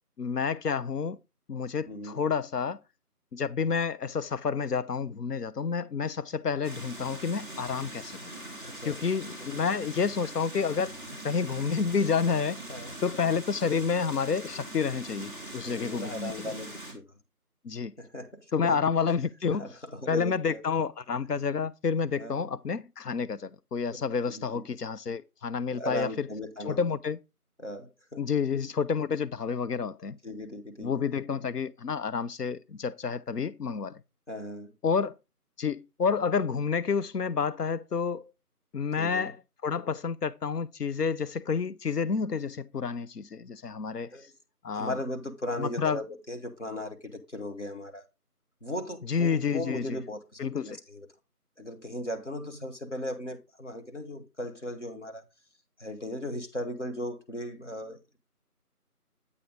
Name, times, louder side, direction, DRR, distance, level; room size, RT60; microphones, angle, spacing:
voice 1, 0.2-1.2 1.5-2.8 3.3-8.2 8.8-10.9 11.2-12.6 13.0-16.3 17.6-17.9 18.5-19.7 20.1-26.3 26.6-27.2 28.2-30.2 30.8-34.0 34.8-35.1 35.6-38.2 38.7-39.4 39.6-44.1 44.6-44.9 45.6-46.0 49.1-50.0 50.4-50.8, left 6 dB, 80° left, 0.6 m, -29 dB
voice 2, 1.9-2.3 8.6-9.0 12.7-12.9 15.6-17.1 18.0-18.8 19.6-20.6 22.2-22.5 24.3-24.6 25.7-26.9 27.6-28.2 30.2-31.0 34.3-34.7 39.0-39.3 44.1-44.3 44.7-48.0 48.6-51.1 51.6-55.2 55.8-58.0, left 1 dB, 50° left, 1.1 m, -37 dB
sound 1, 6.6-16.9, right 1 dB, 30° left, 1.8 m, -42 dB
8.3 x 3.3 x 5.1 m
figure-of-eight pair, 175°, 47 cm